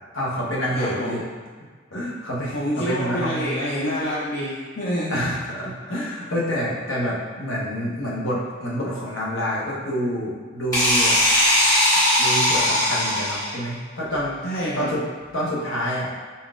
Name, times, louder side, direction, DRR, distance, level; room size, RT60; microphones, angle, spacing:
voice 1, 0.1-1.2 1.9-3.5 5.1-11.2 12.2-15.0 15.3-16.1, equal, 70° left, -5 dB, 0.9 m, -27 dB
voice 2, 0.7-1.2 2.5-5.2 14.4-14.9, equal, 50° left, -7 dB, 0.5 m, -27 dB
sound 1, 10.7-13.6, left 1 dB, 15° left, 1.5 m, -19 dB
3.9 x 3.9 x 2.4 m, 1.5 s
head